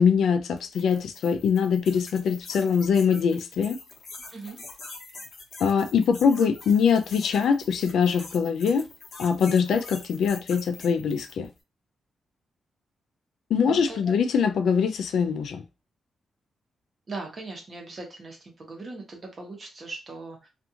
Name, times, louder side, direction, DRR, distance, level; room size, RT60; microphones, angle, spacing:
voice 1, 0.0-3.8 5.6-8.9 9.2-11.5 13.5-15.6, left 6 dB, 80° left, 0.4 m, -23 dB
sound 1, 0.6-11.5, left 3 dB, 55° left, 0.8 m, -44 dB
voice 2, 13.6-14.1 17.1-20.5, right 3 dB, 40° right, 1.0 m, -39 dB
2.5 x 2.4 x 2.8 m
cardioid pair, 125°, 0 cm